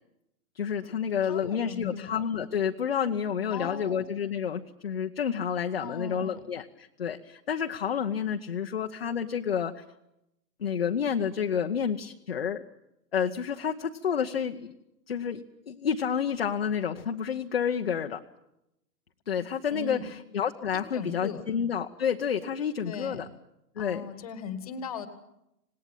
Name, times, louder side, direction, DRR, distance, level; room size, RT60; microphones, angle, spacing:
voice 1, 0.5-9.8 10.6-12.6 13.1-14.7 15.1-18.2 19.3-23.3 23.8-24.1, left 7 dB, 35° left, 4 dB, 0.9 m, -29 dB
voice 2, 1.2-2.1 3.5-4.0 5.8-6.4 19.7-20.1 20.7-21.4 22.8-23.2 23.8-25.1, left 6 dB, 20° left, 11 dB, 1.5 m, -38 dB
26.5 x 19.5 x 9.0 m, 0.87 s
hypercardioid pair, 170°, 49 cm